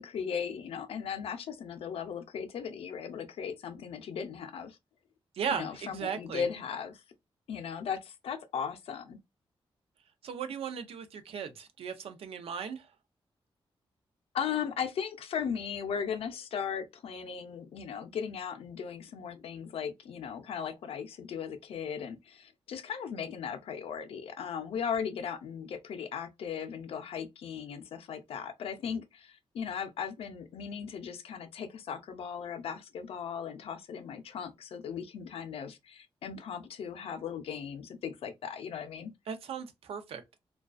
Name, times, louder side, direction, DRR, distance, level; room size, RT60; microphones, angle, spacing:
voice 1, 0.0-4.8 5.5-7.0 7.5-9.2 14.3-39.1, left 7 dB, 85° left, 0.4 m, -37 dB
voice 2, 5.3-6.4 10.2-12.9 39.3-40.4, right 7 dB, 80° right, 0.5 m, -37 dB
2.3 x 2.2 x 2.4 m
wide cardioid pair, 155°, 10 cm